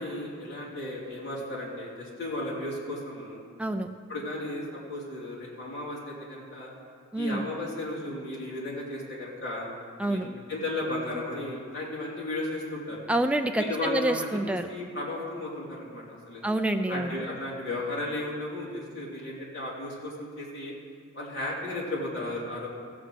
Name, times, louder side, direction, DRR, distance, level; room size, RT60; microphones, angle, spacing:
voice 1, 0.0-3.4 4.1-6.7 7.1-9.7 10.1-13.0 13.6-14.4 14.7-16.4 16.9-20.7 21.1-22.7, left 1 dB, 55° left, -5 dB, 3.0 m, -34 dB
voice 2, 3.6-3.9 7.1-7.4 10.0-10.3 13.1-14.7 16.4-17.2, right 1 dB, 5° right, 5 dB, 0.3 m, -27 dB
15.5 x 5.2 x 7.7 m, 2.1 s
head